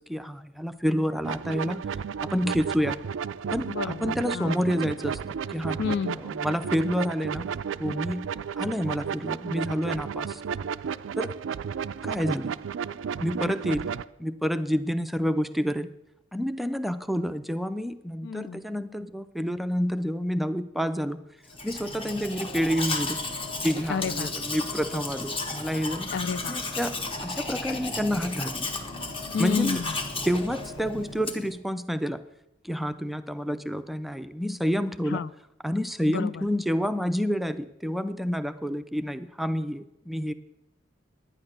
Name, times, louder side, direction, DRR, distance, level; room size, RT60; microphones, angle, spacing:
voice 1, 0.1-1.9 2.2-3.0 3.5-7.5 7.8-8.3 8.6-10.4 11.2-11.4 12.0-12.6 13.2-13.9 14.2-15.9 16.3-21.2 21.6-23.2 23.6-26.1 26.5-27.0 27.2-28.7 29.4-29.8 30.2-32.2 32.6-35.2 35.6-40.3, equal, ahead, 10 dB, 0.4 m, -28 dB
sound 1, 1.2-14.0, right 7 dB, 85° right, 0.4 m, -33 dB
voice 2, 3.7-4.6 5.8-6.2 18.2-18.6 23.9-24.3 26.1-26.6 29.3-30.0 35.1-35.3 36.1-36.4, left 6 dB, 65° left, 17 dB, 0.4 m, -30 dB
Domestic sounds home sounds, 21.5-31.6, left 3 dB, 30° left, 1.1 m, -34 dB
11.0 x 9.6 x 6.5 m, 0.89 s
head